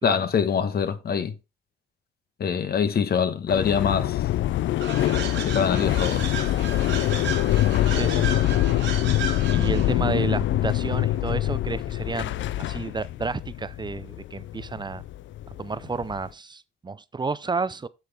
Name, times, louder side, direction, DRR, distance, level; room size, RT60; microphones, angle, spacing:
voice 1, 0.0-1.3 2.4-4.2 5.3-6.3, left 7 dB, 50° left, 1.2 m, -24 dB
sound 1, 3.5-16.3, left 14 dB, 70° left, 0.5 m, -25 dB
sound 2, 4.8-10.0, right 7 dB, 70° right, 2.0 m, -34 dB
voice 2, 7.9-8.4 9.5-15.0 15.6-17.9, right 4 dB, 20° right, 0.6 m, -31 dB
7.8 x 7.0 x 3.5 m
cardioid pair, 90°, 20 cm